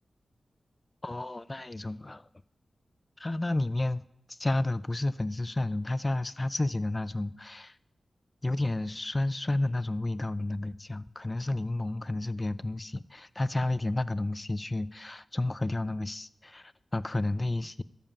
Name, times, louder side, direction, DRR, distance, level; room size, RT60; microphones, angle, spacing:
voice 1, 1.0-2.3 3.2-4.0 4.3-7.7 8.4-17.8, left 2 dB, 30° left, 0.4 m, -31 dB
12.0 x 7.4 x 5.4 m
cardioid pair, 55°, 0 cm